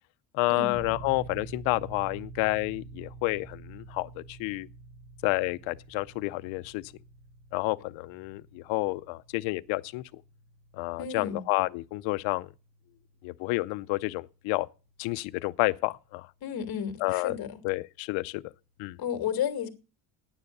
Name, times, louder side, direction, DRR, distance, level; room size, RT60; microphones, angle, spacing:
voice 1, 0.3-4.7 5.2-6.8 7.5-10.0 10.7-12.5 13.2-14.7 15.0-16.3 17.0-17.4 17.6-18.4 18.8-19.0, left 22 dB, 85° left, 0.6 m, -30 dB
sound 1, 0.7-15.2, right 4 dB, 75° right, 1.3 m, -48 dB
voice 2, 11.0-11.4 16.4-17.6 19.0-19.7, left 8 dB, 55° left, 2.3 m, -32 dB
10.5 x 9.4 x 6.6 m
cardioid pair, 115°, 44 cm